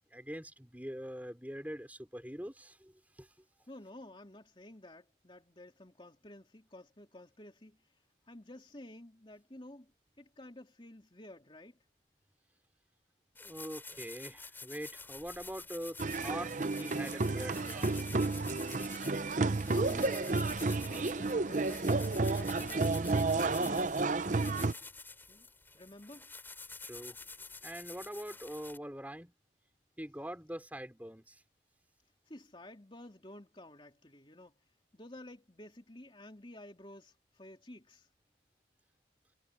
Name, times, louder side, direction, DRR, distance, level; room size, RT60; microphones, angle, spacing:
voice 1, 0.1-2.9 3.2-3.3 13.4-17.9 26.8-27.2 27.6-29.3 30.0-31.4, equal, 10° right, 3.7 m, -43 dB
voice 2, 3.7-7.8 8.3-9.9 10.2-11.8 19.4-20.5 20.8-21.8 22.3-24.8 25.3-25.5 25.7-26.3 32.3-34.5 34.9-38.1, left 1 dB, 25° left, 3.0 m, -51 dB
sound 1, 13.3-28.8, left 3 dB, 10° left, 4.0 m, -49 dB
sound 2, 16.0-24.7, right 3 dB, 40° right, 0.7 m, -31 dB
head